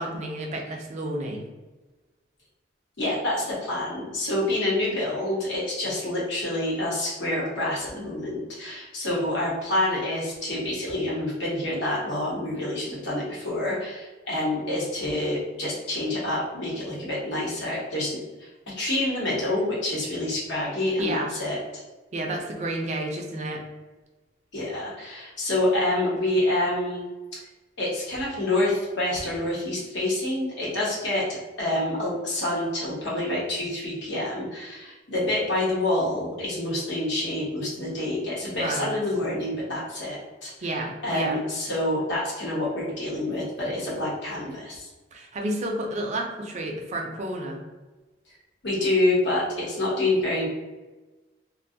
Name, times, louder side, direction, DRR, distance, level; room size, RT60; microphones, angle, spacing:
voice 1, 0.0-1.4 21.0-21.3 22.1-23.6 38.6-38.9 40.6-41.4 45.1-47.6, right 1 dB, 40° right, 1 dB, 0.4 m, -30 dB
voice 2, 3.0-21.6 24.5-27.0 27.3-27.4 27.8-44.9 48.6-50.5, left 1 dB, 70° left, -5 dB, 0.9 m, -27 dB
2.4 x 2.2 x 2.6 m, 1.2 s
head